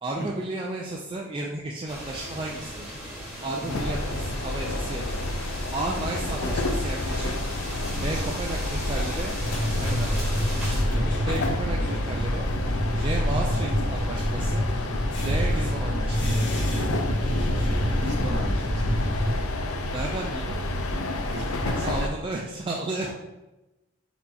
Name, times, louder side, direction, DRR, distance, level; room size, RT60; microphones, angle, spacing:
voice 1, 0.0-2.9 3.4-5.2 5.7-7.4 8.0-9.3 9.8-12.4 13.0-14.6 15.2-16.4 19.9-20.6 21.8-23.1, right 2 dB, 25° right, -2 dB, 0.3 m, -33 dB
sound 1, 1.9-10.8, equal, 5° right, 1.4 m, -37 dB
sound 2, 3.7-22.1, left 1 dB, 85° left, 0.5 m, -30 dB
voice 2, 7.9-8.4 10.8-11.0 18.0-19.0 21.3-21.9, right 1 dB, 55° right, 0 dB, 1.0 m, -36 dB
sound 3, 9.3-19.4, equal, 55° left, 1.0 m, -27 dB
4.4 x 2.8 x 4.2 m, 1.0 s
head